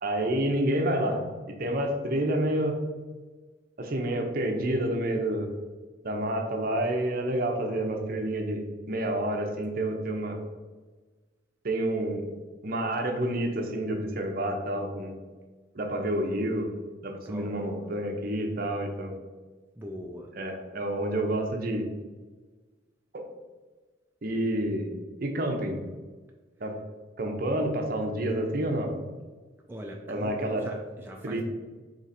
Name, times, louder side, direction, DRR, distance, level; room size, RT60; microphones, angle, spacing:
voice 1, 0.0-1.2 1.6-2.7 3.8-5.5 6.0-10.4 11.6-12.2 12.6-15.1 15.7-16.7 17.0-19.1 20.4-21.9 23.1-23.2 24.2-24.9 25.2-25.8 26.6-26.7 27.2-28.9 30.1-30.6 31.2-31.4, right 1 dB, 50° right, 3 dB, 0.7 m, -29 dB
voice 2, 17.3-17.9 19.8-20.3 29.7-31.4, equal, 10° right, 0 dB, 0.3 m, -41 dB
3.9 x 3.0 x 4.2 m, 1.3 s
head